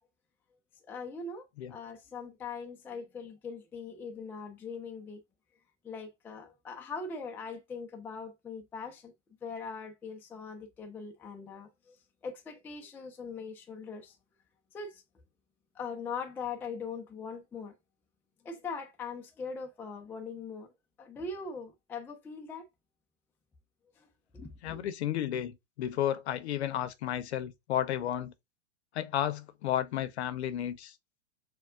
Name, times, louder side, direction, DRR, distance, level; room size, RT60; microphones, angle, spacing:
voice 1, 0.9-5.2 5.8-9.1 9.4-12.0 12.2-14.2 14.7-15.0 15.7-17.7 18.4-20.7 21.0-22.7 24.0-24.1 24.3-24.8, left 5 dB, 5° left, 0.4 m, -41 dB
voice 2, 24.6-28.3 28.9-30.9, left 11 dB, 55° left, 0.7 m, -32 dB
6.2 x 2.3 x 2.4 m
figure-of-eight pair, 100°, 38 cm